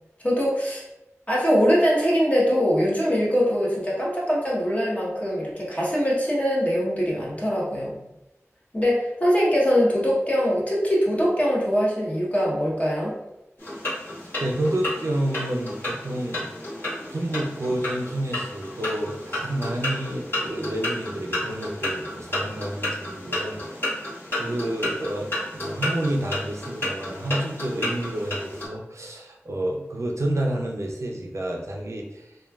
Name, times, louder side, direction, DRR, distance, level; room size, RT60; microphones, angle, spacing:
voice 1, 0.2-0.8 1.3-8.0 8.7-13.1, equal, 25° left, -5 dB, 1.0 m, -22 dB
sound 1, 13.6-28.7, left 1 dB, 45° left, 1.3 m, -32 dB
voice 2, 14.2-16.5 17.1-24.0 24.4-32.3, right 1 dB, 70° right, 0 dB, 0.4 m, -29 dB
3.0 x 2.3 x 2.3 m, 0.93 s
wide cardioid pair, 40°, 5 cm